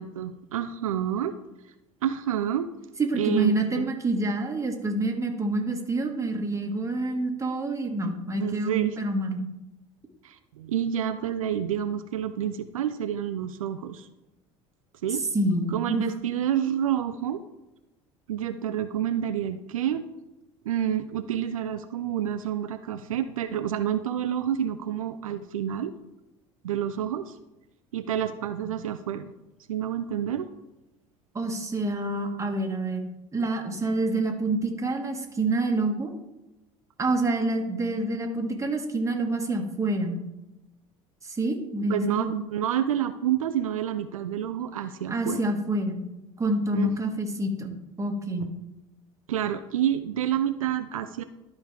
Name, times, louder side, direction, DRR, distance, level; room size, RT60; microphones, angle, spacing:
voice 1, 0.0-1.3 2.0-2.7 3.2-3.9 8.0-9.0 10.2-14.1 15.0-15.2 15.7-17.4 18.3-20.0 20.6-25.9 26.6-27.4 27.9-29.3 29.7-30.5 41.9-45.4 46.7-47.0 48.4-48.5 49.3-51.2, right 10 dB, 80° right, 10 dB, 0.4 m, -29 dB
voice 2, 3.0-9.4 15.3-16.0 31.3-36.1 37.0-40.2 41.2-42.4 45.1-46.0 46.4-47.7 48.0-48.5, right 2 dB, 15° right, 2 dB, 1.5 m, -27 dB
12.5 x 5.2 x 3.3 m, 0.96 s
hypercardioid pair, 70°, 17 cm